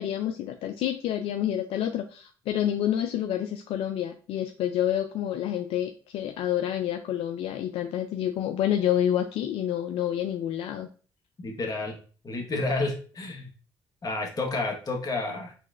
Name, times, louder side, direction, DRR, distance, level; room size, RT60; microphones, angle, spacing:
voice 1, 0.0-10.9, left 11 dB, 75° left, 6 dB, 0.4 m, -28 dB
voice 2, 11.4-12.0 12.2-13.5 14.0-15.5, left 2 dB, 40° left, 1 dB, 1.2 m, -30 dB
4.1 x 3.1 x 2.4 m, 0.40 s
supercardioid pair, 65°, 10 cm